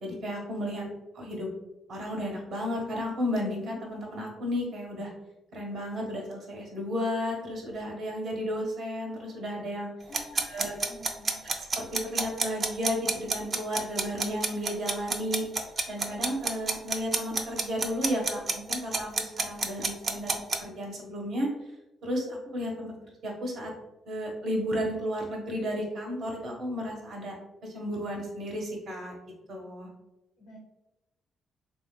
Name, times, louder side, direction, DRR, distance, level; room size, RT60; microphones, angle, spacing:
voice 1, 0.0-0.8 1.1-1.5 1.9-5.1 5.5-9.9 10.3-10.7 11.4-15.4 15.9-21.5 22.0-22.9 23.2-23.7 24.1-27.4 27.6-29.1 29.5-29.9, equal, 70° right, -1 dB, 1.1 m, -33 dB
voice 2, 10.1-11.4 30.4-30.6, left 1 dB, 70° left, -1 dB, 0.9 m, -49 dB
sound 1, 10.1-20.6, right 4 dB, 40° right, 0.4 m, -29 dB
3.3 x 2.9 x 2.2 m, 1.0 s
cardioid pair, 90°, 0 cm